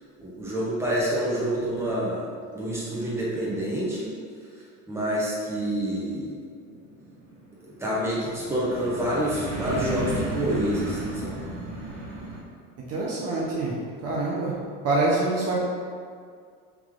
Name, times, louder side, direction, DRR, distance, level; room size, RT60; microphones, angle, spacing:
voice 1, 0.2-2.3 2.5-4.1 4.9-6.3 7.8-11.4, right 1 dB, 10° right, -8 dB, 1.2 m, -27 dB
sound 1, 6.4-12.4, right 1 dB, 65° right, 1.4 m, -34 dB
voice 2, 12.9-14.6 14.8-15.6, right 2 dB, 45° right, -5 dB, 0.8 m, -26 dB
3.4 x 3.0 x 3.7 m, 2.1 s
cardioid pair, 115°, 33 cm